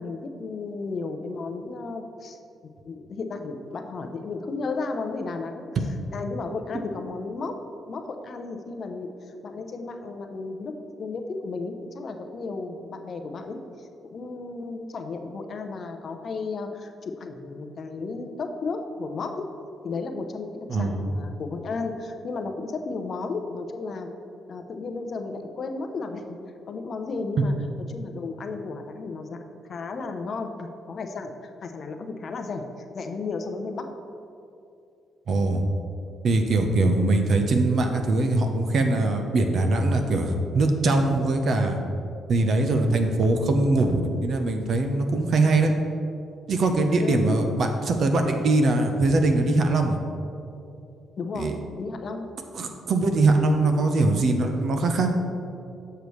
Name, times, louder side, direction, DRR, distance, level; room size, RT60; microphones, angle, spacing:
voice 1, 0.0-2.4 2.8-5.7 6.1-7.5 7.9-9.1 9.4-10.7 11.0-19.4 19.8-24.1 24.5-26.2 26.7-27.5 27.9-29.4 29.7-32.6 32.9-33.9 47.0-47.3 51.2-52.3, left 3 dB, 50° left, 6 dB, 0.6 m, -33 dB
voice 2, 20.7-21.0 35.3-35.6 36.2-41.8 42.3-45.7 46.5-50.0 51.3-51.5 52.5-55.1, right 2 dB, 55° right, 5 dB, 0.7 m, -22 dB
6.9 x 6.6 x 3.1 m, 2.6 s
cardioid pair, 90°, 0 cm